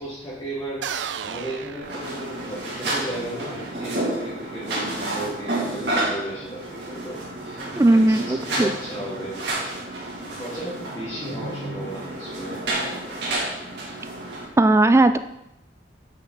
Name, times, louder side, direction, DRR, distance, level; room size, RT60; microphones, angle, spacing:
voice 1, 0.0-7.6 7.9-9.4 10.0-12.6, right 1 dB, 20° left, -9 dB, 1.9 m, -35 dB
sound 1, 0.8-2.8, right 7 dB, 90° right, 0.4 m, -33 dB
sound 2, 1.8-14.5, right 1 dB, 70° right, 2.1 m, -30 dB
voice 2, 7.7-8.7 14.6-15.2, right 2 dB, 15° right, 11 dB, 0.3 m, -17 dB
8.3 x 5.7 x 3.9 m, 0.86 s
head